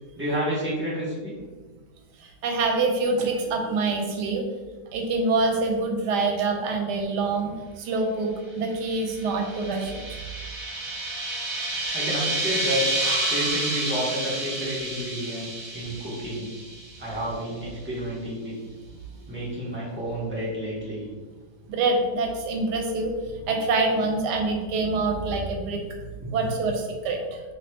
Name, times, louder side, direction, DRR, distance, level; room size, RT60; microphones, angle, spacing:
voice 1, 0.2-1.3 11.5-12.8 13.3-16.5 17.0-18.5 19.3-21.1 26.2-26.3, equal, 10° right, -8 dB, 0.7 m, -30 dB
voice 2, 2.2-4.5 4.9-10.2 21.7-23.2 23.5-25.8 26.3-27.4, right 3 dB, 80° right, 3 dB, 1.2 m, -26 dB
sound 1, 8.9-17.3, right 1 dB, 60° right, 1.1 m, -30 dB
3.0 x 2.8 x 3.1 m, 1.3 s
omnidirectional pair, 1.8 m